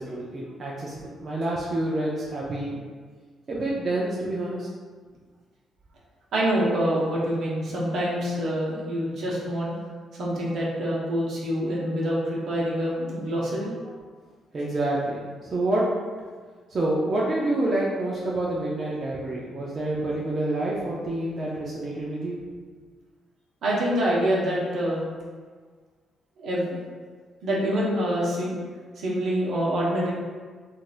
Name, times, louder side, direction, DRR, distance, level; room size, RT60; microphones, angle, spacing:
voice 1, 0.0-2.8 3.5-4.7 14.5-15.2 15.4-15.9 16.7-22.4, right 1 dB, 40° right, -5 dB, 0.5 m, -27 dB
voice 2, 6.3-9.7 10.2-13.7 23.6-25.0 26.4-26.6 27.4-28.5 29.0-30.1, equal, 70° right, -5 dB, 0.9 m, -26 dB
3.8 x 2.5 x 2.5 m, 1.6 s
cardioid pair, 90°, 0 cm